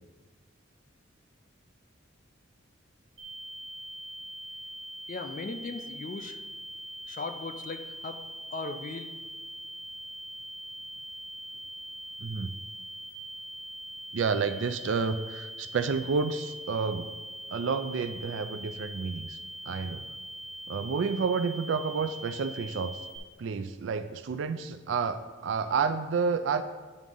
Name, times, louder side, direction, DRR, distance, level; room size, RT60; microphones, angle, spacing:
sound 1, 3.2-23.2, right 1 dB, 30° right, 1.7 m, -42 dB
voice 1, 5.1-6.4 7.1-8.2 8.5-9.1, left 3 dB, 40° left, 7 dB, 0.5 m, -38 dB
voice 2, 12.2-12.5 14.1-17.1 17.5-19.4 19.7-20.0 20.7-23.0 23.4-26.6, right 5 dB, 70° right, 11 dB, 0.3 m, -30 dB
9.3 x 3.6 x 5.4 m, 1.3 s
head